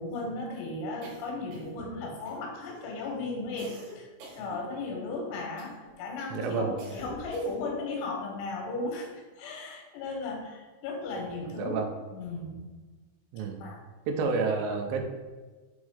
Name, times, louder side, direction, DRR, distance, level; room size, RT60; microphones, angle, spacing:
voice 1, 0.0-11.8 12.1-12.7 13.6-13.8, left 2 dB, 80° left, 1 dB, 4.0 m, -36 dB
sound 1, 1.0-1.9 2.3-2.8 3.6-5.1 5.6-6.0 6.8-7.8, right 2 dB, 65° right, 3.4 m, -48 dB
voice 2, 6.3-6.8 11.6-11.9 13.3-13.6 14.1-15.0, right 4 dB, 85° right, 3 dB, 3.2 m, -29 dB
8.1 x 3.7 x 4.9 m, 1.3 s
omnidirectional pair, 6.0 m